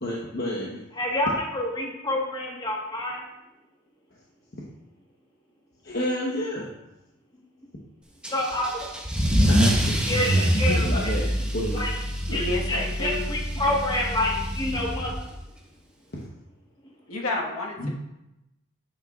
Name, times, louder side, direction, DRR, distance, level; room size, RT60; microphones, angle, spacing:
voice 1, 0.0-0.8 4.1-4.2 4.5-4.6 5.8-6.7 9.5-10.0 10.3-11.8 16.1-16.3 17.8-17.9, left 1 dB, 50° left, -4 dB, 1.1 m, -30 dB
voice 2, 1.0-3.2 8.3-8.7 10.0-11.1 11.7-11.9 12.3-15.1, left 1 dB, 20° left, -2 dB, 1.4 m, -28 dB
Car / Engine starting / Accelerating revving vroom, 8.2-15.4, equal, 5° right, 0.9 m, -25 dB
voice 3, 12.3-13.3 17.1-17.9, left 2 dB, 85° left, -1 dB, 1.6 m, -30 dB
9.6 x 8.9 x 2.5 m, 0.92 s
head